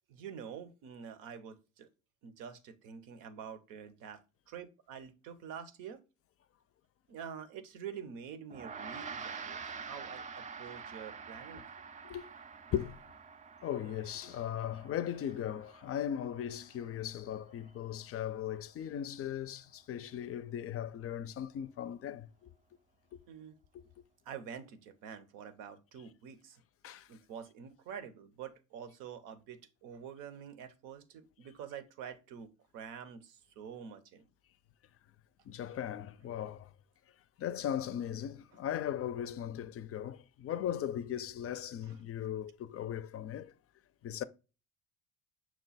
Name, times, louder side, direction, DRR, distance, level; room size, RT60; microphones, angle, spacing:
voice 1, 0.1-1.9 2.2-6.0 7.1-11.6 23.3-23.6 24.3-26.6 27.1-34.2 35.7-35.8 36.3-36.5 38.5-38.6 41.8-42.0, right 7 dB, 80° right, 0.7 m, -47 dB
Gong, 8.5-18.1, right 5 dB, 25° right, 0.4 m, -47 dB
voice 2, 13.6-22.3 23.1-23.2 23.7-23.8 26.8-27.1 35.5-36.7 37.4-43.5 44.0-44.2, left 10 dB, 45° left, 0.4 m, -38 dB
6.0 x 2.2 x 4.0 m
supercardioid pair, 80°, 31 cm